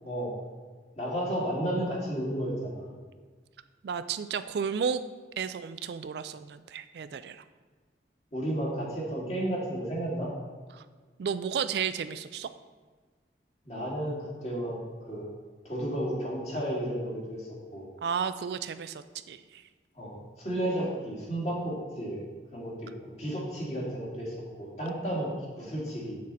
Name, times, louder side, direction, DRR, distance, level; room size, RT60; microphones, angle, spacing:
voice 1, 1.0-2.8 8.3-10.3 13.6-14.8 15.1-15.2 15.6-17.9 20.0-22.2 22.5-22.9 23.2-26.2, right 1 dB, 35° left, -4 dB, 2.1 m, -32 dB
voice 2, 3.8-5.0 5.4-7.4 10.7-10.8 11.2-12.5 18.0-19.6, right 7 dB, 65° right, 12 dB, 0.3 m, -33 dB
7.4 x 6.4 x 4.1 m, 1.4 s
head